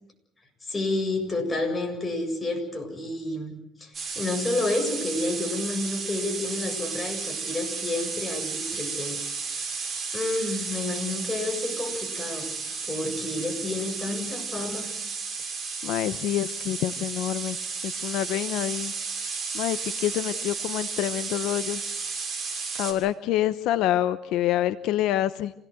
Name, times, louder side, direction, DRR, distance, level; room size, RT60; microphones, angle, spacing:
voice 1, 0.6-9.2 9.5-12.5 12.9-14.9, left 2 dB, 20° left, 3 dB, 7.4 m, -30 dB
sound 1, 3.9-22.9, right 5 dB, 30° right, 6.5 m, -33 dB
voice 2, 15.8-17.6 17.8-18.9 19.5-21.8 22.8-25.5, left 13 dB, 80° left, 12 dB, 0.9 m, -27 dB
27.5 x 18.0 x 8.0 m, 0.80 s
cardioid pair, 115°, 0 cm